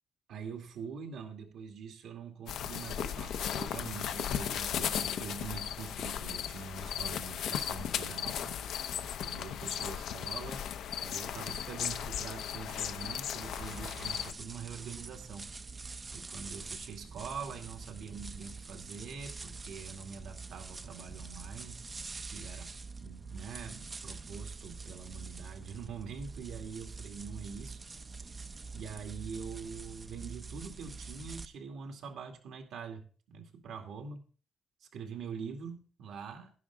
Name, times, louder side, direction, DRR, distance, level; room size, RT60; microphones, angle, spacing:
voice 1, 0.3-8.6 9.2-10.6 11.0-15.5 16.1-21.8 22.3-22.7 23.0-27.8 28.7-34.2 34.9-36.5, right 6 dB, 75° right, 3 dB, 2.4 m, -44 dB
sound 1, 2.5-14.3, left 9 dB, 75° left, 0.8 m, -36 dB
sound 2, 13.4-31.4, right 4 dB, 25° right, 0.6 m, -45 dB
11.5 x 11.0 x 3.7 m, 0.38 s
cardioid pair, 140°, 0 cm